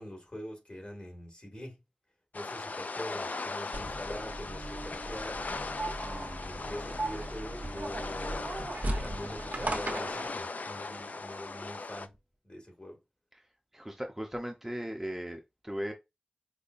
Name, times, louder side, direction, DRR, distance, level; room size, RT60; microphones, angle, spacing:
voice 1, 0.0-1.8 2.3-5.4 5.9-8.5 9.0-12.1 12.4-13.0, equal, 45° left, 1.9 m, -44 dB
sound 1, 2.3-12.1, left 3 dB, 75° left, 0.3 m, -39 dB
sound 2, 3.7-10.3, right 1 dB, 75° right, 0.9 m, -37 dB
voice 2, 13.7-15.9, equal, 10° right, 0.6 m, -37 dB
5.4 x 2.1 x 2.5 m
wide cardioid pair, 45°, 3 cm